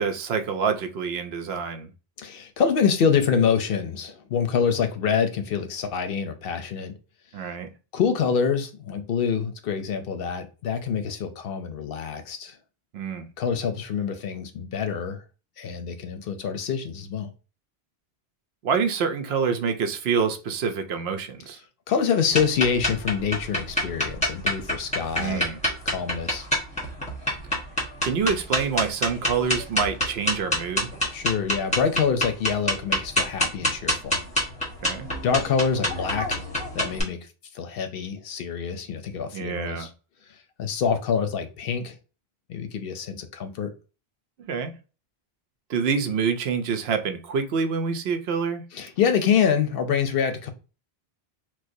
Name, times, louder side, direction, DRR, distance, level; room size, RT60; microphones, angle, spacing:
voice 1, 0.0-1.9 7.3-7.7 12.9-13.3 18.6-21.6 25.2-25.6 28.0-30.9 34.8-35.1 39.3-39.9 44.5-44.7 45.7-48.6, right 6 dB, 75° right, 0.8 m, -26 dB
voice 2, 2.2-6.9 7.9-12.6 13.4-15.2 15.6-17.3 21.9-25.5 25.9-26.5 31.1-34.2 35.2-36.4 36.7-37.2 37.5-39.9 40.6-42.0 42.5-43.7 48.7-50.5, left 6 dB, 65° left, 0.7 m, -26 dB
sound 1, 22.3-37.0, equal, 5° left, 1.1 m, -27 dB
4.5 x 2.1 x 2.6 m
omnidirectional pair, 1.1 m